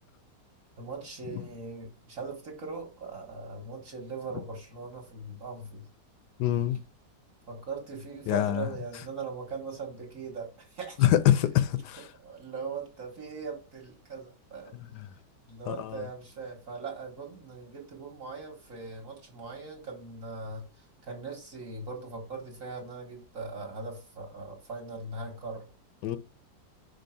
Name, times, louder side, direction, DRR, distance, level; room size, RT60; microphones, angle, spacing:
voice 1, 0.8-5.9 7.5-11.0 12.2-15.0 15.5-25.6, right 4 dB, 50° right, 1.6 m, -40 dB
voice 2, 6.4-6.8 8.3-8.7 11.0-12.1 15.0-15.1 15.7-16.1 26.0-26.2, left 12 dB, 75° left, 1.1 m, -25 dB
5.3 x 4.6 x 4.4 m
omnidirectional pair, 2.0 m